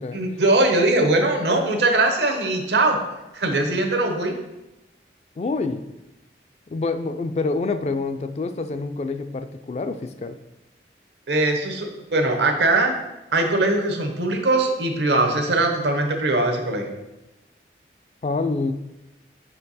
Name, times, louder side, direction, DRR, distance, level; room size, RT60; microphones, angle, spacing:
voice 1, 0.1-3.0 3.3-4.3 11.3-12.9 13.3-16.9, right 2 dB, 75° right, 4 dB, 0.9 m, -21 dB
voice 2, 5.4-5.8 6.7-10.4 18.2-18.7, left 3 dB, 35° left, 9 dB, 0.3 m, -27 dB
5.3 x 4.4 x 4.1 m, 1.0 s
head